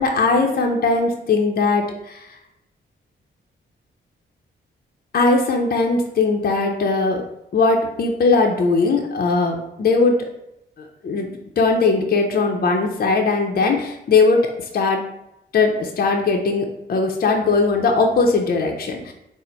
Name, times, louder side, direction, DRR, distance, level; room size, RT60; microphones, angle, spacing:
voice 1, 0.0-2.2 5.1-7.2 7.5-10.2 11.0-11.3 11.6-15.0 15.5-19.1, left 3 dB, 45° left, 2 dB, 0.6 m, -19 dB
3.9 x 2.1 x 4.3 m, 0.84 s
cardioid pair, 75°, 20 cm